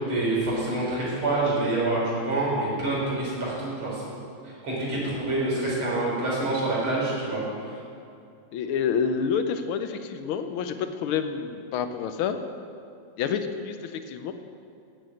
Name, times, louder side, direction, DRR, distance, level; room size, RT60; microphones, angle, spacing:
voice 1, 0.1-4.1 4.4-7.7, right 2 dB, 75° right, -6 dB, 4.8 m, -27 dB
voice 2, 8.5-12.4 13.2-14.3, left 7 dB, 85° left, 9 dB, 1.6 m, -28 dB
10.5 x 7.8 x 8.5 m, 2.6 s
omnidirectional pair, 2.3 m